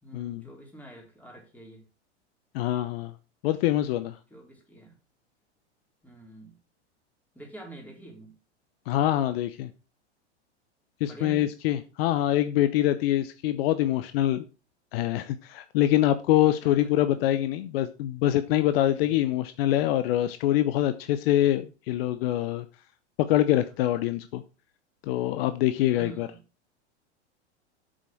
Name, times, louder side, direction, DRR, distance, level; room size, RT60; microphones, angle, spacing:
voice 1, 0.0-1.9 4.3-5.0 6.0-6.6 7.3-8.4 11.0-11.5 16.6-17.3 19.0-19.2 25.9-26.4, right 2 dB, 5° left, 4.1 m, -46 dB
voice 2, 2.5-3.1 3.4-4.2 8.9-9.7 11.0-14.4 14.9-22.6 23.3-24.4 25.0-26.3, left 13 dB, 55° left, 0.8 m, -25 dB
8.0 x 6.4 x 4.6 m
hypercardioid pair, 100°, 34 cm